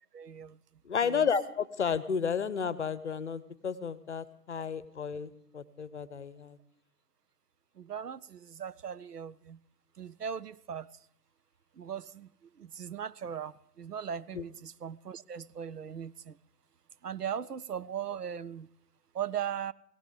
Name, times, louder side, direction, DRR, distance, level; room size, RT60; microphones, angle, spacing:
voice 1, 0.1-0.6 1.1-1.2 7.8-9.6 10.0-10.9 11.8-12.3 12.6-16.4 17.0-18.7 19.1-19.7, right 8 dB, 70° right, 18 dB, 0.7 m, -38 dB
voice 2, 0.8-6.6 14.3-14.4, left 6 dB, 45° left, 18 dB, 0.9 m, -32 dB
17.5 x 16.5 x 4.9 m, 0.71 s
figure-of-eight pair, 140°, 49 cm